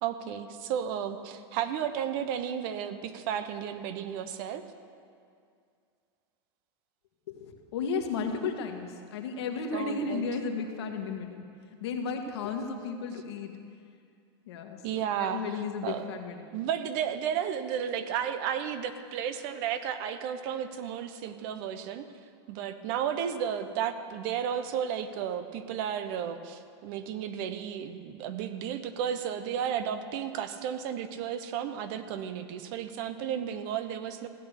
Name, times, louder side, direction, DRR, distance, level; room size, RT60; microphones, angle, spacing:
voice 1, 0.0-4.6 9.7-10.2 14.8-16.2 16.5-22.1 22.5-34.3, right 9 dB, 55° right, 10 dB, 1.0 m, -33 dB
voice 2, 7.3-11.4 11.8-13.5 14.5-14.8 15.2-16.6, left 5 dB, 75° left, 3 dB, 1.7 m, -34 dB
16.0 x 8.6 x 6.6 m, 2.3 s
supercardioid pair, 125°, 14 cm